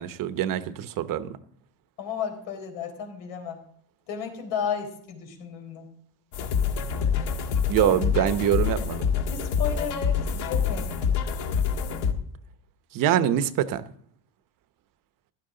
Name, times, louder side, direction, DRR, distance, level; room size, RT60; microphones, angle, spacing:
voice 1, 0.0-1.4 7.7-9.1 12.9-13.8, right 11 dB, 45° right, 0.9 m, -24 dB
voice 2, 2.0-3.6 4.1-5.9 7.8-8.0 9.3-10.9, left 7 dB, 90° left, 4.3 m, -33 dB
sound 1, 6.3-12.1, left 6 dB, 55° left, 1.7 m, -26 dB
15.5 x 12.0 x 3.8 m
cardioid pair, 140°, 47 cm